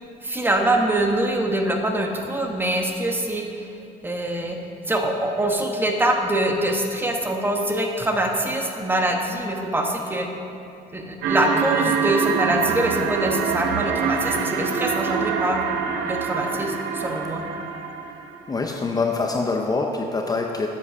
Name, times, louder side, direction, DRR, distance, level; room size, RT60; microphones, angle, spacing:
voice 1, 0.2-3.7 4.0-4.6 4.9-10.3 10.9-15.6 16.0-17.4, right 1 dB, 10° right, 2 dB, 1.0 m, -24 dB
sound 1, 11.2-18.4, right 6 dB, 85° right, 0.8 m, -25 dB
voice 2, 18.5-20.7, left 3 dB, 20° left, 2 dB, 0.6 m, -24 dB
8.5 x 7.5 x 5.6 m, 2.6 s
cardioid pair, 110°, 17 cm